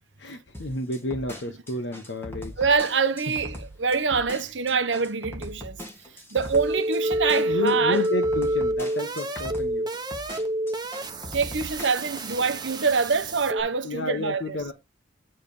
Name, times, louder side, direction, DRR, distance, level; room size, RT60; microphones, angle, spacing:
voice 1, 0.2-2.5 7.4-9.9 13.8-14.7, left 2 dB, 75° left, 1.0 m, -31 dB
sound 1, 0.5-12.5, left 1 dB, 15° left, 2.2 m, -40 dB
voice 2, 2.6-5.8 6.3-8.0 11.3-14.6, right 5 dB, 90° right, 0.9 m, -25 dB
sound 2, 6.5-13.6, right 1 dB, 25° right, 1.0 m, -28 dB
8.7 x 3.3 x 5.2 m
head